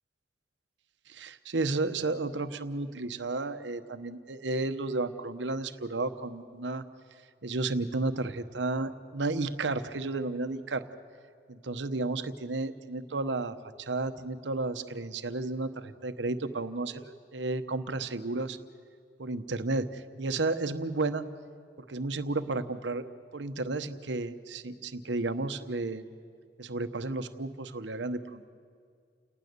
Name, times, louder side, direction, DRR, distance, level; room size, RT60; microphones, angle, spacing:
voice 1, 1.1-6.8 7.4-10.8 11.5-18.6 19.2-21.3 21.9-23.1 23.3-26.0 26.6-28.5, right 3 dB, 85° right, 10 dB, 1.0 m, -32 dB
29.5 x 19.0 x 6.8 m, 2.2 s
head